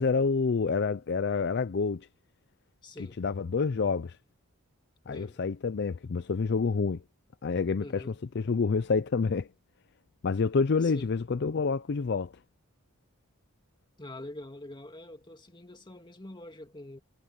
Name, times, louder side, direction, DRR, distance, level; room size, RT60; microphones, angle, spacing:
voice 1, 0.0-2.1 3.2-4.2 5.1-7.0 7.4-8.0 8.4-9.5 10.2-12.3, left 4 dB, 50° left, 0.4 m, -28 dB
voice 2, 2.8-3.2 5.1-5.4 7.8-8.2 10.8-11.1 14.0-17.0, left 1 dB, 20° left, 1.9 m, -45 dB
head